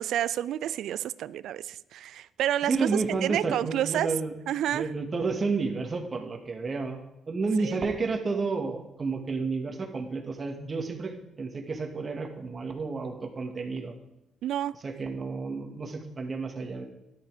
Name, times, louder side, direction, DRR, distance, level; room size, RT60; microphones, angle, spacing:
voice 1, 0.0-2.9 3.2-4.1 4.5-4.9 7.6-7.8 14.4-14.7, right 11 dB, 75° right, 0.4 m, -29 dB
voice 2, 2.6-4.3 4.7-7.0 7.3-13.9 14.8-16.8, right 4 dB, 35° right, 2.2 m, -31 dB
13.5 x 11.5 x 5.0 m
cardioid pair, 90°, 0 cm